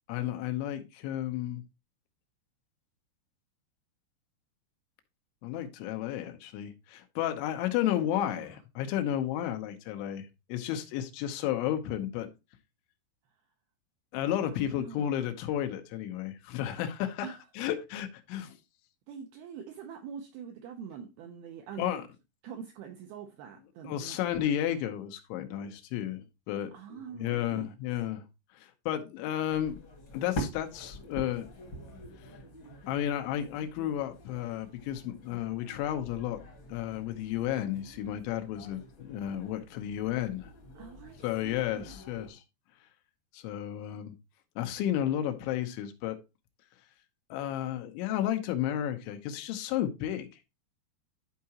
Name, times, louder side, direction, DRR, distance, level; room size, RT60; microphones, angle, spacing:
voice 1, 0.1-1.6 5.4-12.3 14.1-17.3 17.6-18.6 21.8-22.0 23.8-26.7 27.1-28.2 28.5-29.8 30.1-31.5 32.2-32.3 32.9-36.4 36.7-40.5 41.2-42.4 43.3-44.1 44.6-46.2 47.3-50.3, left 11 dB, 90° left, 3.3 m, -32 dB
voice 2, 7.9-8.6 14.5-15.2 17.2-17.4 19.1-22.0 22.4-24.5 26.7-27.7 40.7-42.0, right 7 dB, 80° right, 2.2 m, -45 dB
sound 1, 29.5-42.3, equal, 60° left, 1.3 m, -45 dB
11.5 x 4.7 x 2.9 m
omnidirectional pair, 5.2 m